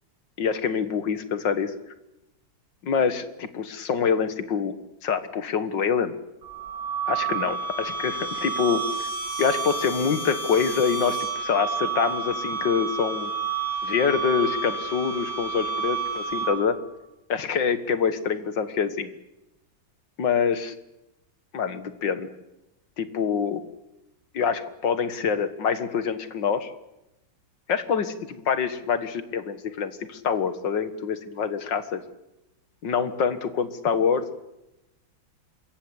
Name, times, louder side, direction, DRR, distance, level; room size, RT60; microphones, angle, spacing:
voice 1, 0.4-1.7 2.8-4.8 5.0-6.1 7.1-9.1 9.4-13.3 13.8-16.8 17.3-19.1 20.2-20.8 21.5-22.3 23.0-23.6 24.3-26.7 27.7-32.0 32.8-34.3, left 6 dB, 65° left, 11 dB, 2.2 m, -25 dB
sound 1, 6.4-16.8, right 5 dB, 45° right, 8.1 m, -30 dB
27.0 x 22.0 x 8.3 m, 0.92 s
omnidirectional pair, 2.1 m